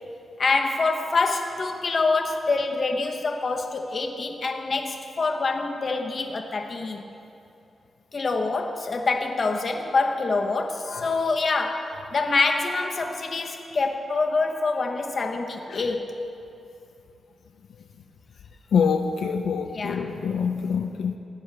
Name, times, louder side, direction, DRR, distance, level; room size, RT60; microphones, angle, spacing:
voice 1, 0.4-7.0 8.1-16.1 19.7-20.1, left 3 dB, 45° left, 3 dB, 0.9 m, -26 dB
voice 2, 18.7-21.2, left 6 dB, 90° left, 5 dB, 0.4 m, -25 dB
17.5 x 9.5 x 3.3 m, 2.7 s
wide cardioid pair, 125°, 0 cm